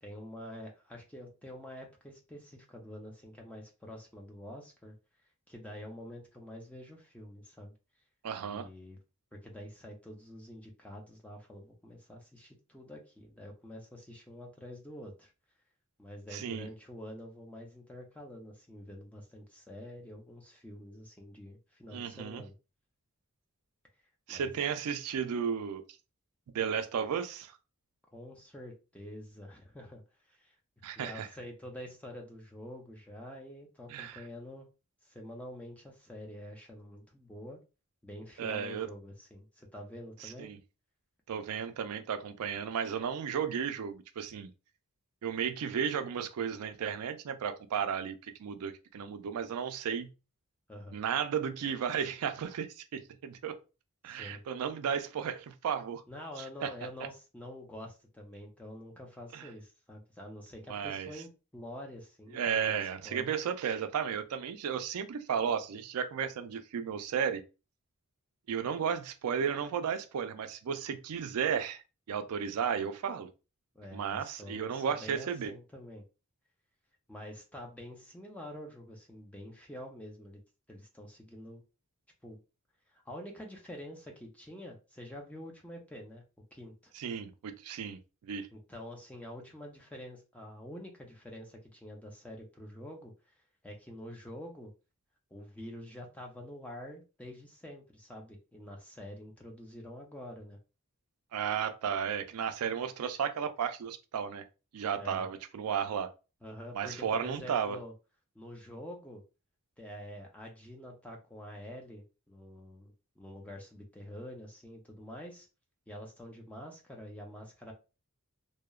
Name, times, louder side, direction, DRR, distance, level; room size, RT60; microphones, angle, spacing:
voice 1, 0.0-4.9 5.5-7.7 8.5-9.0 9.3-15.3 16.0-22.5 24.3-24.5 28.1-30.0 30.3-30.5 30.9-34.7 35.0-37.6 38.0-40.5 50.7-51.0 54.1-54.4 56.1-62.8 63.0-63.4 73.7-76.0 77.1-80.4 80.7-81.6 82.2-82.4 82.9-86.2 86.5-86.9 88.5-93.1 93.6-94.7 95.3-100.6 105.0-105.3 106.4-107.9 108.3-109.2 109.8-115.5 115.9-117.7, left 1 dB, 5° left, 0.5 m, -47 dB
voice 2, 8.2-8.7 16.3-16.7 21.9-22.4 24.3-25.8 26.5-27.6 30.8-31.3 33.9-34.2 38.4-38.9 40.2-40.6 41.3-44.5 45.2-50.1 50.9-53.6 54.0-56.0 56.6-56.7 59.3-59.5 60.7-61.1 62.3-67.4 68.5-71.8 72.1-73.3 73.9-75.5 86.9-88.5 101.3-104.4 104.7-106.1 106.7-107.8, right 7 dB, 80° right, 0.4 m, -34 dB
2.8 x 2.0 x 2.3 m
head